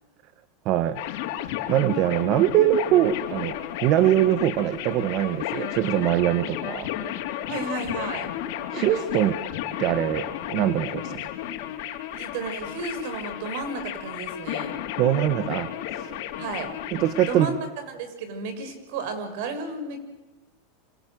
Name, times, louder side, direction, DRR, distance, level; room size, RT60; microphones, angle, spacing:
voice 1, 0.6-1.0 1.7-6.9 8.7-9.4 9.8-11.3 15.0-16.1 16.9-17.5, right 12 dB, 50° right, 12 dB, 1.5 m, -23 dB
sound 1, 1.0-17.5, left 12 dB, 65° left, 3.9 m, -33 dB
voice 2, 7.5-8.3 12.1-14.8 16.4-16.9 17.3-20.0, right 3 dB, 65° right, 9 dB, 6.4 m, -33 dB
27.0 x 26.5 x 8.0 m, 1.2 s
supercardioid pair, 120°, 0 cm